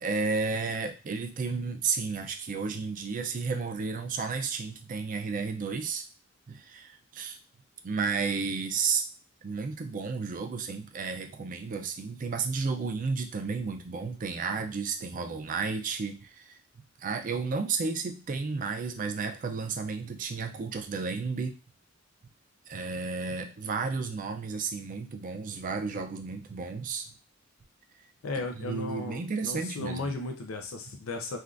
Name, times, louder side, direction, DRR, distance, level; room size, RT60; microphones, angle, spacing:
voice 1, 0.0-6.0 6.5-7.4 7.8-9.1 9.4-16.6 17.0-21.6 22.7-27.1 28.6-30.1, right 4 dB, 40° right, 6 dB, 0.4 m, -32 dB
voice 2, 28.2-31.4, left 2 dB, 90° left, 4 dB, 0.5 m, -35 dB
3.3 x 2.4 x 2.4 m, 0.32 s
head